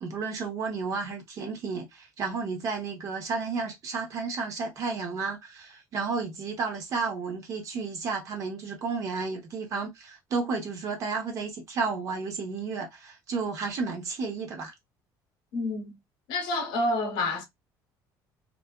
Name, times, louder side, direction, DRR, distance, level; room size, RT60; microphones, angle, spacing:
voice 1, 0.0-14.7, right 4 dB, 45° right, 0.9 m, -32 dB
voice 2, 15.5-16.0 16.3-17.4, left 2 dB, 80° left, 0.8 m, -28 dB
2.5 x 2.3 x 2.2 m
cardioid pair, 165°, 8 cm